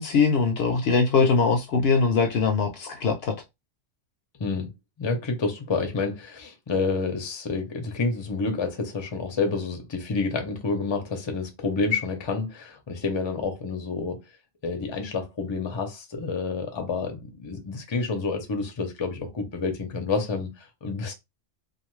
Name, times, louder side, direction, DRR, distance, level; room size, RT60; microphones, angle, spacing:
voice 1, 0.0-3.3, left 4 dB, 65° left, 0.7 m, -22 dB
voice 2, 4.4-4.7 5.0-14.2 14.6-21.1, left 4 dB, 30° left, 0.5 m, -29 dB
2.5 x 2.4 x 3.1 m
omnidirectional pair, 1.2 m